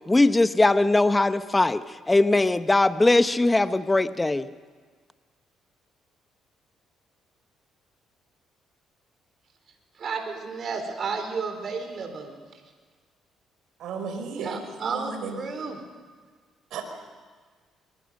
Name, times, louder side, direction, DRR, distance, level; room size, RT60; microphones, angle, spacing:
voice 1, 0.1-1.8 2.1-4.5, left 2 dB, 15° left, 12 dB, 0.9 m, -20 dB
voice 2, 9.9-12.6 14.4-15.8, right 5 dB, 50° right, 5 dB, 4.4 m, -32 dB
voice 3, 13.8-15.4 16.7-16.8, right 5 dB, 75° right, 5 dB, 4.4 m, -34 dB
25.5 x 22.5 x 6.6 m, 1.5 s
cardioid pair, 90°, 0 cm